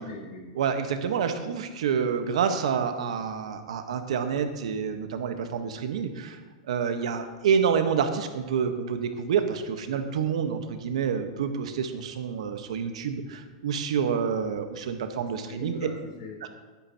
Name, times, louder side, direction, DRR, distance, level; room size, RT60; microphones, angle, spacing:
voice 1, 0.0-0.8 15.2-16.6, left 2 dB, 75° left, -1 dB, 3.9 m, -42 dB
voice 2, 0.5-6.4 6.7-15.8, right 7 dB, 80° right, 7 dB, 1.1 m, -28 dB
15.0 x 9.9 x 2.9 m, 1.3 s
supercardioid pair, 145°, 3 cm